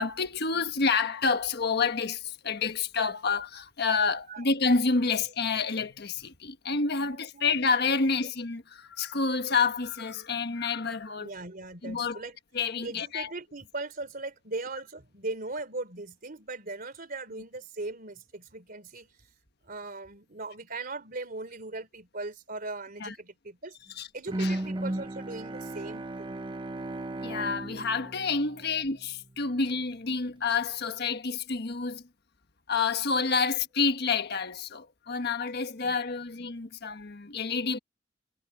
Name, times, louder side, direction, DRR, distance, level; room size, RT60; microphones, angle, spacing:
voice 1, 0.0-11.3 11.8-12.2 12.5-13.3 23.0-23.1 24.0-24.1 24.4-24.6 27.2-32.0 32.7-37.8, left 4 dB, 60° left, 1.4 m, -28 dB
voice 2, 11.2-12.4 12.8-19.1 19.7-23.8 24.1-26.4 28.5-28.6 35.8-36.0 36.4-36.5, right 2 dB, 50° right, 3.4 m, -39 dB
Bowed string instrument, 24.3-29.3, right 1 dB, 25° right, 0.9 m, -35 dB
head